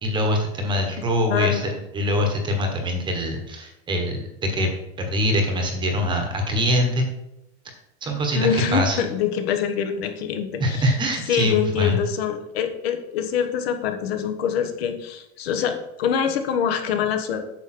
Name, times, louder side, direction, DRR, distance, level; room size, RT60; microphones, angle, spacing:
voice 1, 0.0-4.7 5.0-7.1 8.0-9.0 10.6-12.0, left 1 dB, 15° right, 3 dB, 1.1 m, -23 dB
voice 2, 1.3-1.7 8.3-10.9 11.3-17.4, left 8 dB, 65° left, 6 dB, 1.4 m, -25 dB
9.0 x 6.8 x 4.3 m, 0.87 s
supercardioid pair, 165°, 33 cm